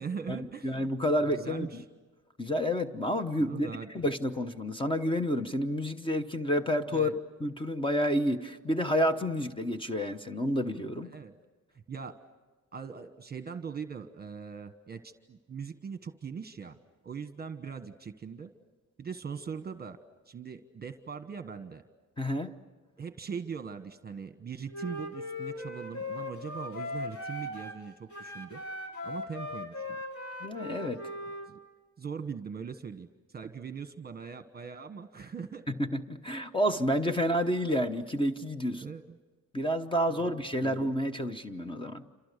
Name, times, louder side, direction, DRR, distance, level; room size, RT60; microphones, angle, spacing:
voice 1, 0.0-0.9 1.2-1.8 3.3-3.9 6.9-7.1 11.1-11.3 11.9-12.2 12.7-16.8 17.0-18.5 19.0-20.0 20.3-21.8 23.0-28.6 29.0-30.0 31.5-31.6 32.0-35.6 37.1-37.2 38.8-39.2 40.1-40.3 40.6-40.8, right 6 dB, 30° right, 1.3 m, -41 dB
voice 2, 0.6-1.7 2.4-3.7 3.9-11.1 22.2-22.5 30.4-31.1 35.8-38.8 39.5-42.0, equal, 15° left, 1.0 m, -29 dB
Wind instrument woodwind instrument, 24.7-27.8 28.1-31.5, left 2 dB, 45° left, 4.4 m, -39 dB
28.5 x 27.0 x 6.7 m
wide cardioid pair, 140°, 31 cm